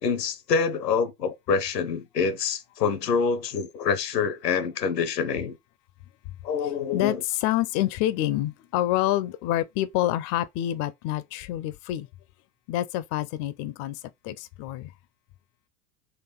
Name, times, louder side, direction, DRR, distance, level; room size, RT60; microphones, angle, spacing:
voice 1, 0.0-5.6 6.4-7.2, left 5 dB, 90° left, 0.8 m, -26 dB
voice 2, 6.9-12.1 12.7-14.9, left 14 dB, 45° left, 0.5 m, -27 dB
3.9 x 2.6 x 3.8 m
hypercardioid pair, 80°, 47 cm